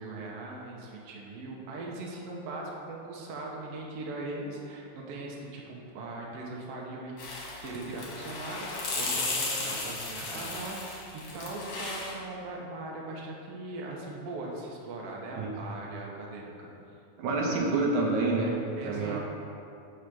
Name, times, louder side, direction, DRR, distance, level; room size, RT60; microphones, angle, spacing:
voice 1, 0.0-7.1 7.6-16.7 17.3-17.8 18.8-19.2, right 2 dB, 65° right, -2 dB, 1.8 m, -40 dB
sound 1, 7.2-12.1, left 3 dB, 55° left, 2.0 m, -35 dB
voice 2, 17.2-18.6 18.8-19.2, right 3 dB, 80° right, -1 dB, 2.2 m, -27 dB
6.4 x 5.0 x 6.0 m, 2.6 s
omnidirectional pair, 3.4 m